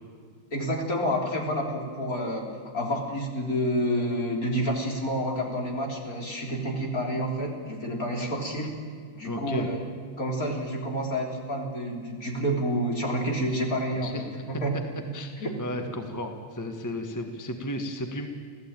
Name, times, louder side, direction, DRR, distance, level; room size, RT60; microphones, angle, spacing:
voice 1, 0.5-2.5 2.7-8.7 9.1-9.8 10.2-14.1 14.5-14.7 15.4-15.5, equal, 40° left, 1 dB, 4.0 m, -29 dB
voice 2, 9.2-9.7 14.0-14.2 15.1-18.3, left 1 dB, 10° left, 5 dB, 1.3 m, -34 dB
26.5 x 16.5 x 9.0 m, 2.1 s
omnidirectional pair, 2.3 m